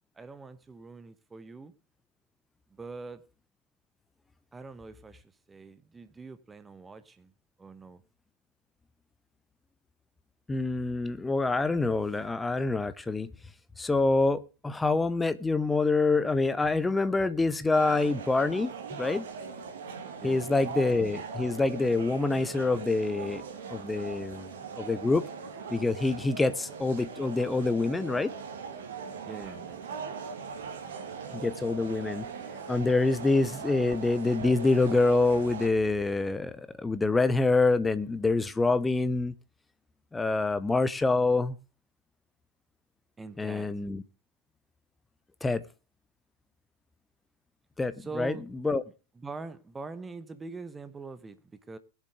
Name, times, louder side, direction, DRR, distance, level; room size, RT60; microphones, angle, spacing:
voice 1, 0.2-1.7 2.7-3.3 4.5-7.3 7.6-8.0 20.2-21.0 29.2-30.0 43.2-43.8 47.9-48.4 48.8-51.8, right 4 dB, 15° right, 1.0 m, -44 dB
voice 2, 10.5-13.3 13.8-19.3 20.2-23.4 23.7-24.5 24.8-25.2 25.7-28.3 31.3-32.3 32.7-39.3 40.1-41.5 43.4-44.0 45.4-45.6 47.8-48.3 48.6-48.8, left 3 dB, 10° left, 0.8 m, -26 dB
sound 1, 17.7-35.7, right 5 dB, 60° right, 2.2 m, -40 dB
21.5 x 7.4 x 3.2 m
figure-of-eight pair, 90°, 0 cm